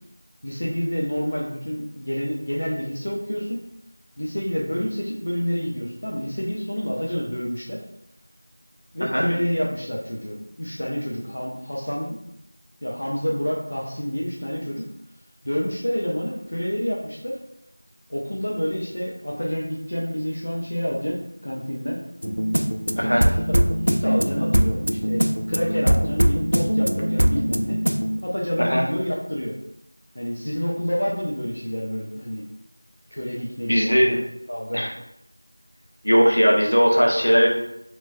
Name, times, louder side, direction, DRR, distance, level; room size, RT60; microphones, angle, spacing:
voice 1, 0.4-3.6 4.2-7.8 8.9-12.2 12.8-14.8 15.4-17.4 18.1-22.0 22.9-23.1 23.4-23.6 23.9-27.8 28.2-29.5 30.1-32.4 33.1-34.2 34.5-34.8, equal, 20° left, -3 dB, 0.3 m, -28 dB
sound 1, 22.2-28.2, equal, 65° right, 0.4 m, -22 dB
voice 2, 23.0-23.3 28.6-28.8 33.7-34.2 34.7-34.9 36.0-37.5, equal, 75° left, -1 dB, 1.1 m, -18 dB
3.2 x 3.0 x 4.1 m, 0.79 s
figure-of-eight pair, 180°, 0 cm